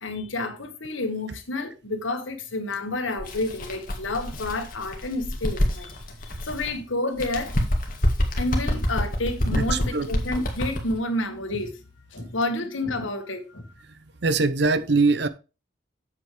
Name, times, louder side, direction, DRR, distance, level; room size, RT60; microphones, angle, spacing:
voice 1, 0.0-5.9 6.2-7.6 8.4-11.8 12.1-13.7, left 2 dB, 90° left, 1.7 m, -29 dB
Bird, 3.2-6.7 7.1-11.0, equal, 45° left, 1.8 m, -27 dB
voice 2, 9.5-10.1 12.2-12.3 14.2-15.3, right 3 dB, 60° right, 0.7 m, -22 dB
7.9 x 7.7 x 3.4 m
head